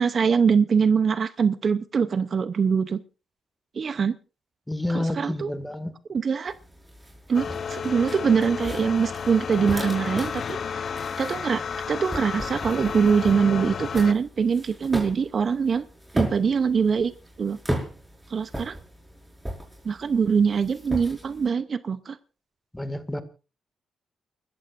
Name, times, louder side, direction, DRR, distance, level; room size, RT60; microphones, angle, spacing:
voice 1, 0.0-3.0 3.8-4.2 4.9-5.5 6.1-6.5 7.3-10.9 11.2-15.9 16.1-17.1 17.4-17.6 18.3-18.8 19.8-22.2, right 6 dB, 50° right, 13 dB, 0.7 m, -23 dB
voice 2, 4.7-5.9 22.7-23.2, left 1 dB, 10° left, 9 dB, 2.0 m, -29 dB
sound 1, 6.5-21.5, right 1 dB, 10° right, 5.3 m, -37 dB
sound 2, 7.3-14.1, left 6 dB, 55° left, 0.8 m, -32 dB
29.5 x 14.0 x 2.6 m, 0.34 s
cardioid pair, 80°, 0 cm